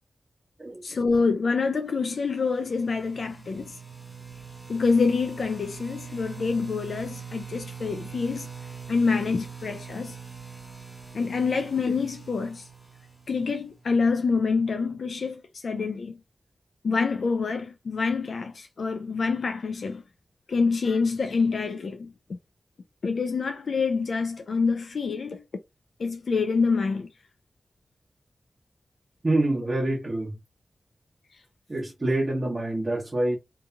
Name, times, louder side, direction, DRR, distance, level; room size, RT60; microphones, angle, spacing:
voice 1, 0.8-3.8 4.7-8.5 8.9-10.2 11.1-12.7 13.3-16.2 16.8-20.0 20.5-22.1 23.0-25.4 26.0-27.1, left 4 dB, 75° left, 0.4 m, -26 dB
sound 1, 2.1-13.9, right 6 dB, 5° right, 1.5 m, -43 dB
voice 2, 29.2-30.3 31.7-33.4, right 2 dB, 35° right, 1.1 m, -26 dB
2.8 x 2.6 x 2.3 m
cardioid pair, 60°, 0 cm